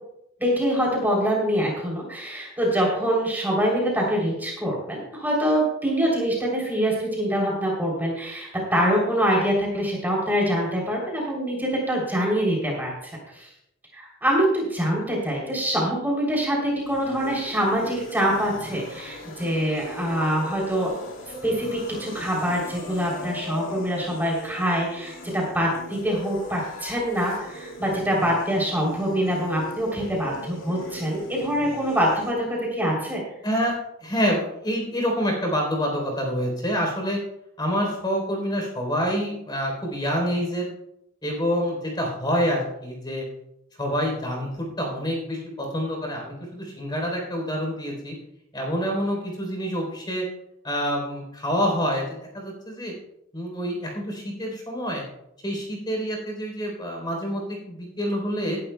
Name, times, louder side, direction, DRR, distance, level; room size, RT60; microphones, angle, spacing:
voice 1, 0.4-12.9 13.3-13.5 13.9-20.9 21.4-33.2, equal, 10° right, -3 dB, 3.3 m, -24 dB
sound 1, 16.7-32.3, left 1 dB, 90° left, 2.1 m, -39 dB
voice 2, 33.4-33.7 34.0-37.2 37.6-40.7 41.2-43.2 43.8-48.1 48.5-50.2 50.6-52.9 53.3-55.0 55.4-58.6, equal, 20° left, 0 dB, 3.7 m, -27 dB
19.0 x 11.5 x 2.3 m, 0.81 s
head